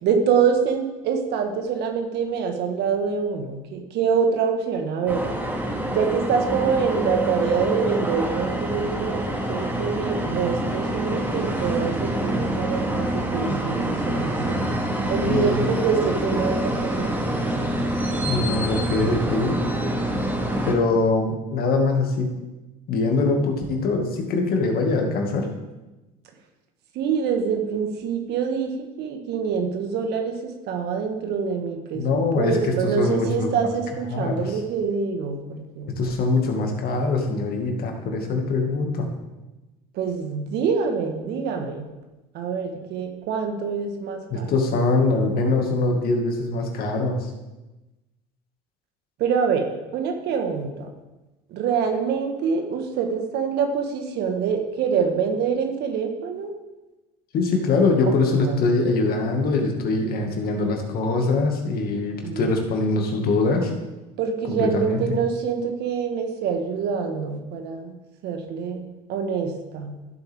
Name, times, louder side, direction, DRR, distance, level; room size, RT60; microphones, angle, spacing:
voice 1, 0.0-5.2 5.9-9.2 9.5-14.4 15.1-17.5 26.9-30.4 30.7-32.1 32.3-35.9 39.9-41.8 42.3-44.5 49.2-50.9 51.5-56.5 58.0-58.7 62.2-62.5 64.2-67.9 68.2-69.9, right 6 dB, 60° right, 4 dB, 1.7 m, -25 dB
sound 1, 5.1-20.7, right 1 dB, 10° right, 2.4 m, -26 dB
voice 2, 15.3-15.7 18.2-19.6 20.6-22.4 22.9-25.5 31.9-33.7 34.1-34.6 35.9-39.1 44.3-47.3 57.3-63.7 64.5-65.2, left 3 dB, 55° left, 3 dB, 2.3 m, -23 dB
14.5 x 7.9 x 3.7 m, 1.1 s
hypercardioid pair, 80°, 19 cm